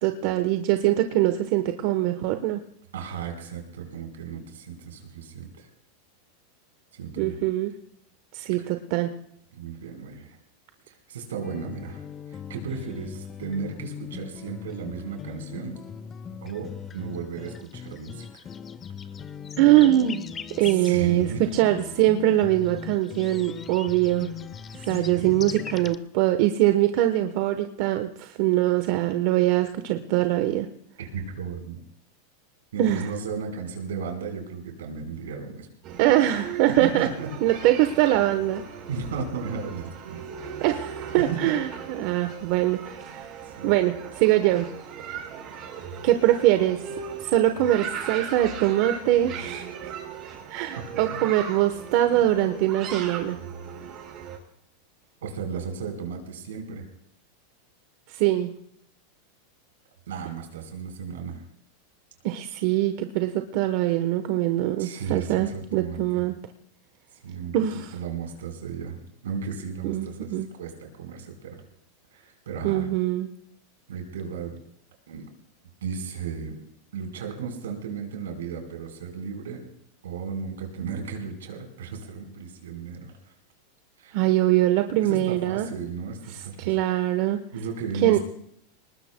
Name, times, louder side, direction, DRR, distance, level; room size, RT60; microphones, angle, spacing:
voice 1, 0.0-2.6 7.2-7.7 8.3-9.1 19.6-20.3 20.6-24.3 24.9-30.7 32.8-33.1 36.0-37.1 37.4-38.6 40.6-43.3 43.6-44.7 46.0-46.8 47.2-49.9 50.5-53.4 58.1-58.5 62.2-66.3 67.5-67.9 69.8-70.5 72.6-73.3 84.1-85.7 86.6-87.4 88.0-88.2, right 14 dB, 60° right, 8 dB, 1.0 m, -23 dB
voice 2, 2.9-5.7 6.9-7.4 8.6-8.7 9.5-10.4 10.9-15.8 16.4-18.4 20.7-21.4 24.7-25.3 31.0-31.8 32.7-35.7 36.8-37.3 38.9-40.2 41.1-41.5 43.6-43.7 50.9-51.2 55.2-56.9 60.1-61.4 64.8-66.2 67.2-67.7 67.9-69.0 69.2-71.6 72.1-72.9 73.9-74.6 75.1-75.3 75.8-76.6 76.9-79.6 80.0-83.1 84.0-84.2 85.0-86.8 87.5-88.2, right 6 dB, 85° right, 3 dB, 4.2 m, -35 dB
sound 1, 11.4-26.0, left 7 dB, 25° left, 0.8 m, -39 dB
sound 2, 35.8-54.4, right 7 dB, 45° right, 4.9 m, -38 dB
23.0 x 19.5 x 2.2 m, 0.71 s
hypercardioid pair, 120°, 0 cm